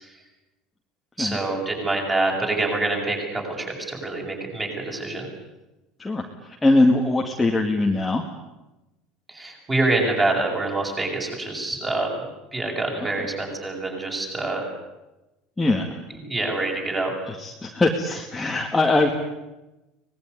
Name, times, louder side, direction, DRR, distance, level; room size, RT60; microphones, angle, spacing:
voice 1, 1.2-5.3 9.3-12.2 12.5-14.7 16.3-17.1, right 2 dB, 15° right, 0 dB, 7.4 m, -26 dB
voice 2, 6.0-8.2 13.2-13.3 15.6-16.0 17.3-19.1, left 2 dB, 10° left, 0 dB, 2.2 m, -22 dB
24.5 x 20.5 x 9.9 m, 1.0 s
cardioid pair, 155°, 0 cm